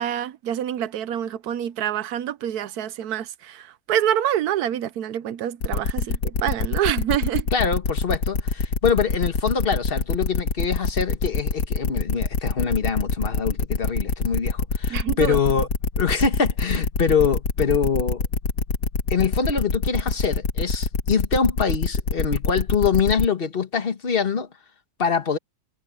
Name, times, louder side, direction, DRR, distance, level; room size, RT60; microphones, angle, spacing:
voice 1, 0.0-7.5 14.9-15.4, right 11 dB, 70° right, 1.2 m, -26 dB
sound 1, 5.6-23.3, left 4 dB, 90° left, 2.5 m, -24 dB
voice 2, 7.5-15.7 16.0-18.2 19.1-24.5 25.0-25.4, left 6 dB, 35° left, 1.4 m, -24 dB
omnidirectional pair, 1.7 m